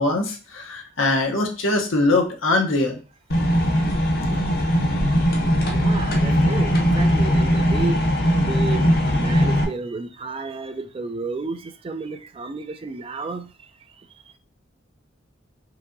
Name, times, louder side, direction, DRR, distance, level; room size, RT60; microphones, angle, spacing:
voice 1, 0.0-3.0, left 2 dB, 85° left, 3 dB, 0.8 m, -22 dB
sound 1, 3.3-9.6, equal, 50° left, 0.7 m, -20 dB
voice 2, 5.3-8.0 8.4-13.5, right 3 dB, 30° right, 10 dB, 0.3 m, -32 dB
4.6 x 2.8 x 2.6 m, 0.35 s
head